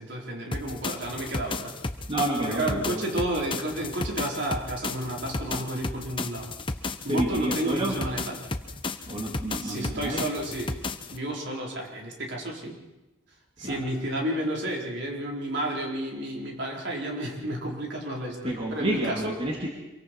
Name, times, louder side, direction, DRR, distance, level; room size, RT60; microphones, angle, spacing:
voice 1, 0.0-1.7 2.4-6.5 7.0-8.5 9.6-10.8 11.1-12.8 13.6-19.3, right 1 dB, 60° right, -1 dB, 4.5 m, -31 dB
sound 1, 0.5-11.2, left 3 dB, 25° left, 0.9 m, -34 dB
voice 2, 2.1-3.1 7.1-8.0 9.1-10.2 13.6-13.8 18.4-19.7, right 1 dB, 25° right, -1 dB, 2.6 m, -29 dB
26.5 x 23.5 x 4.7 m, 1.0 s
head